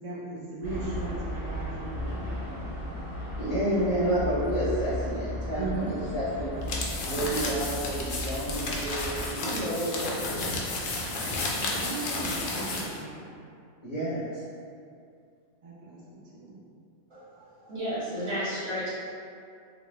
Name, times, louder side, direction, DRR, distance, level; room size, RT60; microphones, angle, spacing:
voice 1, 0.0-2.3 5.6-5.9 10.8-10.9 11.6-13.4 15.6-16.6, right 3 dB, 50° right, -6 dB, 0.5 m, -37 dB
sound 1, 0.6-9.3, left 1 dB, 5° right, 1.2 m, -35 dB
voice 2, 3.4-5.8 6.1-6.6 7.0-10.6 13.8-14.2, right 1 dB, 40° left, -12 dB, 1.0 m, -30 dB
sound 2, 6.6-13.0, left 2 dB, 80° left, 1.0 m, -32 dB
voice 3, 17.1-18.9, equal, 80° right, -12 dB, 1.8 m, -33 dB
3.5 x 2.3 x 3.2 m, 2.3 s
omnidirectional pair, 1.3 m